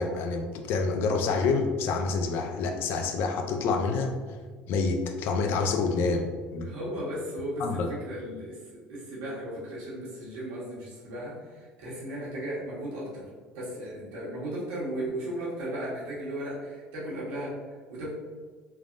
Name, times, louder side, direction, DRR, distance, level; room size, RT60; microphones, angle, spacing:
voice 1, 0.0-4.1 4.7-6.7 7.6-7.9, left 4 dB, 65° left, 5 dB, 0.4 m, -27 dB
voice 2, 6.6-13.2 13.5-17.5 17.9-18.1, right 1 dB, 85° right, -6 dB, 1.1 m, -36 dB
3.3 x 2.0 x 2.5 m, 1.5 s
supercardioid pair, 95°, 4 cm